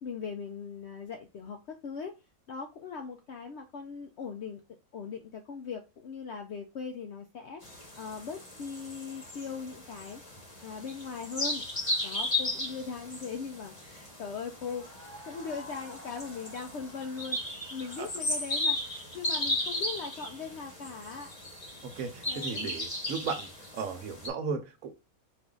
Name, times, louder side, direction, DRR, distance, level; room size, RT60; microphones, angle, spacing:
voice 1, 0.0-2.2 2.5-4.6 4.9-10.2 10.6-11.6 12.0-14.9 15.3-17.4 17.7-21.3 21.7-21.8 22.3-22.7, left 5 dB, 65° left, 4 dB, 0.7 m, -40 dB
sound 1, 7.6-24.3, left 2 dB, 25° left, 1.0 m, -36 dB
sound 2, 14.5-19.2, left 1 dB, 10° right, 1.2 m, -51 dB
voice 2, 21.8-23.5 23.7-24.9, right 5 dB, 70° right, 6 dB, 1.2 m, -35 dB
4.5 x 2.5 x 3.7 m, 0.27 s
omnidirectional pair, 1.5 m